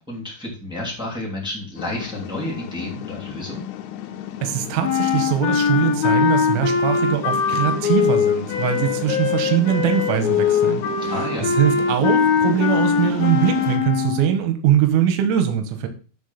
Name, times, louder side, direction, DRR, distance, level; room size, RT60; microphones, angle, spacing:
voice 1, 0.1-3.7 11.0-11.5, left 1 dB, ahead, -3 dB, 1.0 m, -31 dB
sound 1, 1.8-13.8, left 11 dB, 90° left, 3.3 m, -34 dB
voice 2, 4.4-15.9, right 10 dB, 90° right, 7 dB, 3.7 m, -22 dB
sound 2, 4.8-14.4, left 6 dB, 65° left, 2.5 m, -21 dB
11.5 x 4.1 x 5.5 m, 0.37 s
omnidirectional pair, 5.8 m